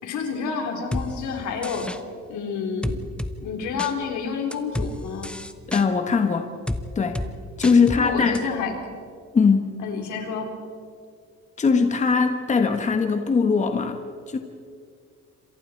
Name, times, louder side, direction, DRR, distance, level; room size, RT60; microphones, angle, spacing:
voice 1, 0.0-1.9 2.3-3.0 3.4-5.4 7.8-8.8 9.8-10.5, left 5 dB, 80° left, 2 dB, 4.3 m, -29 dB
sound 1, 0.9-1.1 1.6-2.0 2.8-3.3 3.8-3.9 4.5-4.9 5.2-5.8 6.7-6.8 7.2-7.3 7.6-8.0 8.4-8.5, left 1 dB, 5° left, 0.9 m, -29 dB
voice 2, 5.7-6.5 6.9-7.2 7.6-8.5 9.3-9.7 11.6-14.0 14.3-14.4, left 5 dB, 25° left, 6 dB, 1.3 m, -20 dB
28.0 x 27.0 x 4.7 m, 2.2 s
cardioid pair, 165°, 29 cm